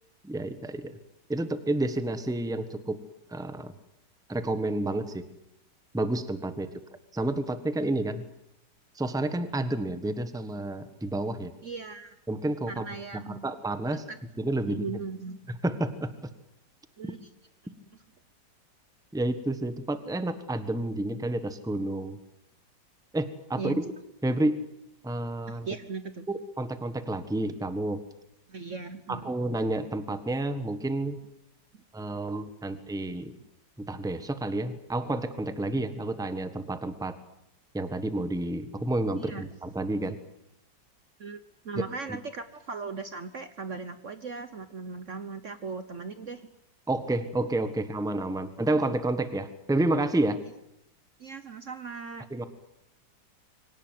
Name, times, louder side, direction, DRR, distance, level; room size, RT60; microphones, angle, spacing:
voice 1, 0.2-1.0 1.3-3.0 3.3-3.7 4.3-5.3 5.9-6.7 7.1-8.3 8.9-11.5 12.3-12.9 13.1-14.1 14.4-14.8 15.5-16.1 17.0-17.1 19.1-22.2 23.1-23.9 24.2-24.6 25.0-25.7 26.3-28.0 29.1-31.2 31.9-33.3 33.8-37.2 37.7-40.2 42.1-42.2 46.9-50.4 52.3-52.5, right 2 dB, ahead, 11 dB, 1.2 m, -30 dB
voice 2, 11.6-12.2 12.7-13.4 14.1-14.2 14.6-15.4 17.0-17.2 23.6-23.8 25.5-26.3 28.5-29.3 39.2-39.4 41.2-41.4 41.6-46.5 51.2-52.3, right 4 dB, 50° right, 11 dB, 1.2 m, -38 dB
23.5 x 18.0 x 9.3 m, 0.80 s
omnidirectional pair, 2.0 m